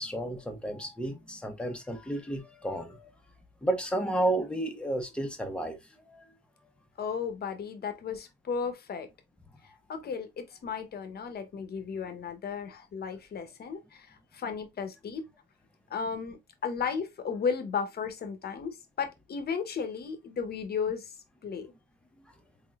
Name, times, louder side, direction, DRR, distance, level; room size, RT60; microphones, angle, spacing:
voice 1, 0.0-3.1 3.6-5.8 6.0-6.3, right 1 dB, 5° left, 1.1 m, -32 dB
voice 2, 7.0-9.1 9.9-15.3 15.9-21.2 21.4-21.7, left 6 dB, 50° left, 1.0 m, -34 dB
3.9 x 3.6 x 2.4 m
cardioid pair, 90°, 20 cm